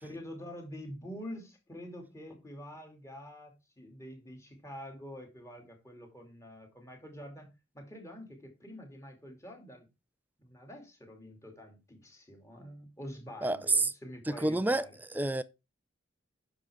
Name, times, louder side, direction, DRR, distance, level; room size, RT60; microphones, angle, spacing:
voice 1, 0.0-7.5 7.7-9.9 10.4-15.0, equal, 15° left, 2.6 m, -46 dB
voice 2, 13.4-13.9 14.3-14.9 15.1-15.4, right 2 dB, 10° right, 0.4 m, -28 dB
9.9 x 6.6 x 3.5 m
head